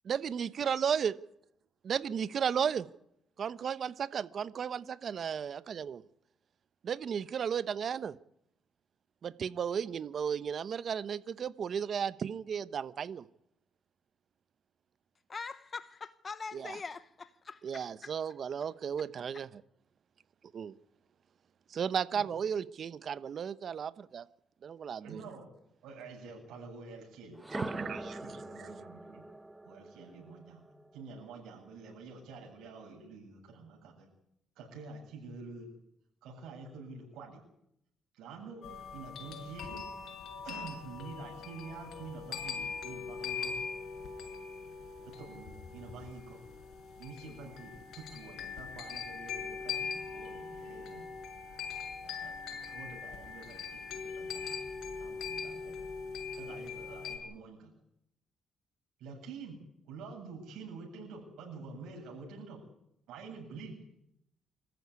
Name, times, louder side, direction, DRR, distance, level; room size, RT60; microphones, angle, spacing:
voice 1, 0.1-1.1 1.9-2.8 3.4-6.0 6.8-8.1 9.2-13.2 16.5-16.8 17.6-19.5 20.5-20.7 21.7-24.3 24.6-25.2 27.5-28.2, right 7 dB, 55° right, 15 dB, 1.0 m, -34 dB
voice 2, 15.3-18.1, left 4 dB, 35° left, 13 dB, 0.9 m, -43 dB
voice 3, 25.0-25.5 25.8-29.2 29.6-34.1 34.6-35.7 36.2-37.4 38.2-38.7 38.9-39.9 40.4-43.5 45.0-46.4 47.0-51.1 52.0-55.8 56.3-57.7 59.0-59.6 59.9-62.6 63.1-63.8, right 4 dB, 85° right, -2 dB, 8.0 m, -48 dB
sound 1, 27.3-31.3, right 1 dB, 15° right, 1.5 m, -43 dB
sound 2, 38.6-57.2, left 5 dB, 75° left, 5.7 m, -41 dB
26.5 x 14.5 x 9.8 m, 0.77 s
cardioid pair, 90°, 0 cm